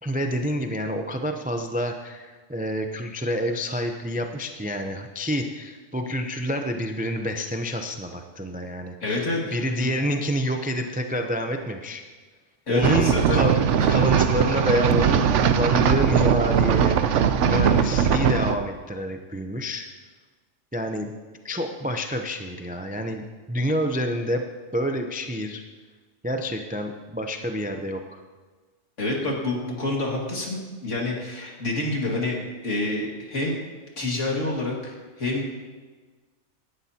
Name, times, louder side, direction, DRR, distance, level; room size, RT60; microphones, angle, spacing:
voice 1, 0.0-12.0 12.7-13.6 13.9-19.9 20.7-21.1 21.4-24.5 24.7-25.6 26.2-28.2, equal, 10° right, 5 dB, 0.4 m, -28 dB
voice 2, 9.0-9.9 12.7-13.4 29.0-33.5 34.0-35.4, left 2 dB, 60° left, -2 dB, 2.6 m, -28 dB
sound 1, 12.8-18.6, right 7 dB, 65° right, 0.9 m, -20 dB
17.5 x 11.5 x 2.9 m, 1.4 s
omnidirectional pair, 1.4 m